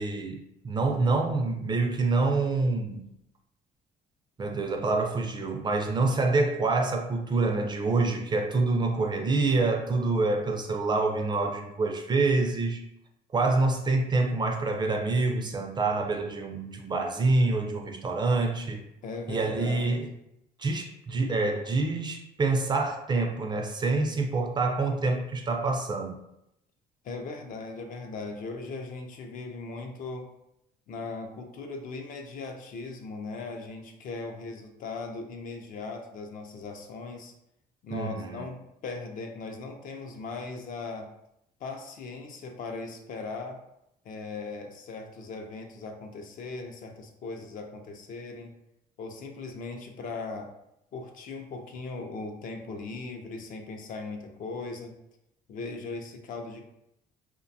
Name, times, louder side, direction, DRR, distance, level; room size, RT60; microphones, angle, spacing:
voice 1, 0.0-3.0 4.4-12.8 13.3-18.8 19.3-20.1 20.6-26.2 37.9-38.4, right 3 dB, 25° right, 0.3 m, -26 dB
voice 2, 19.0-20.1 27.0-30.3 30.9-37.3 37.8-41.1 41.6-43.6 44.0-48.5 49.0-50.5 50.9-55.0 55.5-56.7, left 3 dB, 55° left, 0.4 m, -38 dB
2.5 x 2.2 x 2.6 m
cardioid pair, 110°, 17 cm